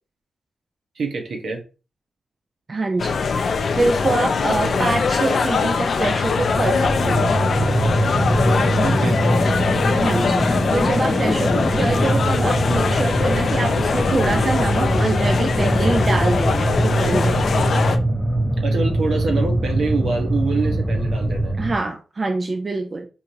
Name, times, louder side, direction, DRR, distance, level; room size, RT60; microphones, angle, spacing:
voice 1, 1.0-1.6 4.6-4.7 8.8-9.2 18.6-21.6, right 3 dB, 75° right, 2 dB, 0.9 m, -25 dB
voice 2, 2.7-3.2 3.7-7.3 10.0-17.4 21.6-23.1, right 3 dB, 50° right, 5 dB, 0.5 m, -25 dB
sound 1, 3.0-18.0, left 5 dB, 70° left, 0.4 m, -22 dB
sound 2, 6.4-21.8, right 1 dB, 5° left, 0.7 m, -22 dB
3.8 x 2.8 x 2.6 m, 0.32 s
supercardioid pair, 45°, 0 cm